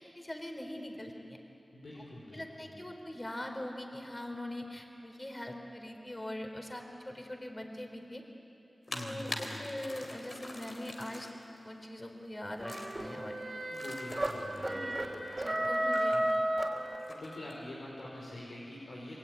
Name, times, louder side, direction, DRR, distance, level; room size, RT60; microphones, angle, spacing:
voice 1, 0.0-1.4 2.3-8.2 8.9-11.3 11.6-13.4 14.3-14.9 15.4-16.4, left 1 dB, 25° left, 4 dB, 3.9 m, -42 dB
voice 2, 1.7-2.8 8.9-9.7 13.7-15.2 17.1-19.2, left 1 dB, 90° left, -5 dB, 4.9 m, -45 dB
sound 1, 8.9-11.4 12.7-12.9 13.7-14.7 15.9-16.2 17.0-17.5, left 1 dB, 60° left, 3.6 m, -43 dB
sound 2, 12.6-17.4, right 1 dB, 35° right, 3.3 m, -33 dB
27.0 x 22.0 x 9.6 m, 2.9 s
cardioid pair, 50°, 0 cm